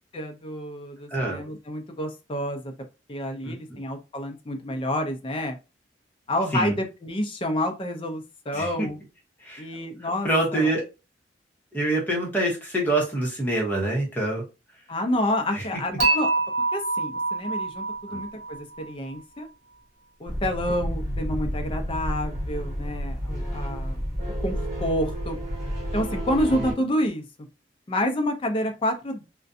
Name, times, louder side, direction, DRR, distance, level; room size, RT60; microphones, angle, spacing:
voice 1, 0.1-2.7 3.1-5.6 6.3-9.0 9.6-10.7 14.9-16.3 16.7-19.5 20.2-24.0 24.4-25.4 25.9-27.2 27.9-29.2, left 1 dB, 30° left, 5 dB, 0.4 m, -29 dB
voice 2, 3.4-3.8 6.5-6.7 8.5-8.9 9.4-9.6 10.2-10.8 11.7-14.4 15.5-15.6 18.1-18.2, right 1 dB, 10° left, -2 dB, 0.9 m, -25 dB
Dishes pots and pans / Chink clink, 16.0-19.1, right 3 dB, 70° right, 0.9 m, -26 dB
sound 1, 20.3-26.7, equal, 45° right, 1.3 m, -30 dB
2.4 x 2.2 x 2.5 m, 0.28 s
head